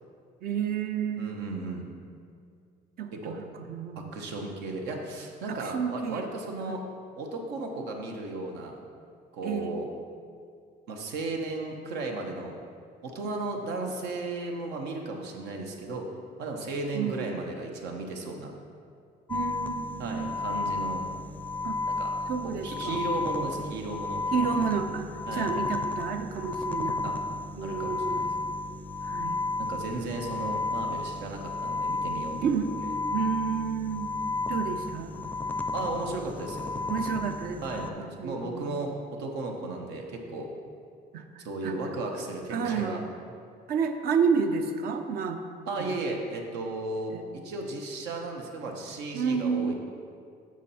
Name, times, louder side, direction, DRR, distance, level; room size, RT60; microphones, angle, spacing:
voice 1, 0.4-1.3 3.0-4.1 5.5-6.3 6.7-6.8 9.4-9.8 16.9-17.3 19.3-20.3 21.6-21.8 22.3-23.0 24.3-27.1 27.6-28.3 29.0-29.4 32.4-32.8 33.1-34.1 34.5-35.1 36.9-37.9 38.2-38.7 41.1-41.7 42.5-43.0 43.7-45.4 45.8-46.0 47.1-47.2 49.1-49.7, right 6 dB, 60° right, 6 dB, 0.7 m, -30 dB
voice 2, 1.2-1.9 3.1-3.3 4.0-6.8 7.2-8.8 9.3-9.9 10.9-12.6 13.0-16.1 16.4-18.5 20.0-21.0 21.9-22.1 22.4-24.2 25.3-25.5 27.0-27.2 27.6-28.3 29.6-32.6 35.0-35.1 35.7-36.7 37.6-40.5 41.4-43.0 45.7-47.1 47.4-49.7, right 2 dB, 85° right, 2 dB, 1.1 m, -35 dB
sound 1, 19.3-37.9, left 3 dB, 10° left, 0.4 m, -32 dB
7.4 x 6.4 x 4.2 m, 2.3 s
cardioid pair, 110°, 17 cm